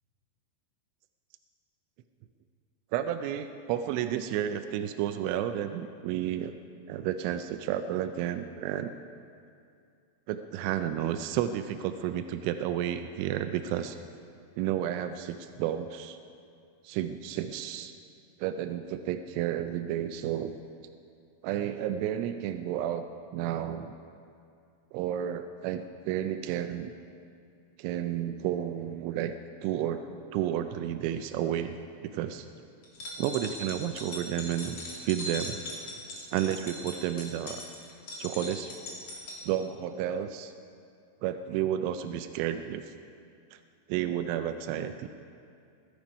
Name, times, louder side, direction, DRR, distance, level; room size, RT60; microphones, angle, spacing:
voice 1, 2.9-6.5 6.9-8.9 10.3-14.0 14.6-16.2 16.8-17.9 18.4-20.6 21.4-23.1 23.3-23.9 24.9-26.9 27.8-29.3 29.6-31.8 32.1-32.5 33.2-35.6 36.3-37.6 38.2-38.7 39.4-40.5 41.2-42.8 43.5-43.6 43.9-45.1, right 10 dB, 90° right, 8 dB, 3.1 m, -31 dB
sound 1, 32.8-39.4, left 1 dB, 40° left, 3.2 m, -40 dB
20.5 x 11.5 x 5.3 m, 2.4 s
omnidirectional pair, 5.4 m